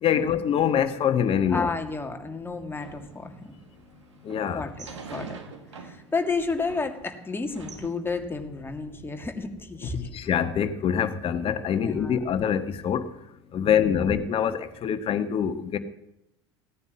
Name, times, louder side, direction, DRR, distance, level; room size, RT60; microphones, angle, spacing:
voice 1, 0.0-1.7 4.2-4.7 9.8-13.1 13.5-15.8, left 8 dB, 40° left, 1.4 m, -25 dB
voice 2, 1.5-3.5 4.5-5.4 5.8-10.1 11.8-12.2 13.6-14.1, left 4 dB, 15° left, 2.2 m, -32 dB
sound 1, 2.8-7.9, right 5 dB, 85° right, 1.9 m, -45 dB
17.0 x 9.6 x 7.6 m
figure-of-eight pair, 75°, 15 cm